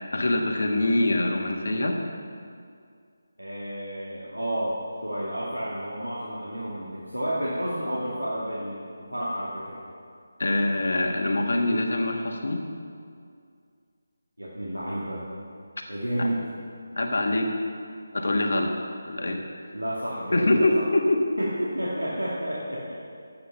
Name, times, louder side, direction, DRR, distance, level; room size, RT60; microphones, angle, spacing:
voice 1, 0.1-2.0 10.4-12.6 16.2-16.3 17.0-17.5 18.1-18.7 19.0-19.4 20.3-21.2, left 2 dB, 60° left, 2 dB, 1.6 m, -24 dB
voice 2, 3.4-9.8 14.4-15.2 15.9-16.5 19.7-20.9 21.4-22.9, equal, 90° right, -6 dB, 2.2 m, -31 dB
11.5 x 8.7 x 5.6 m, 2.2 s
figure-of-eight pair, 155°, 0 cm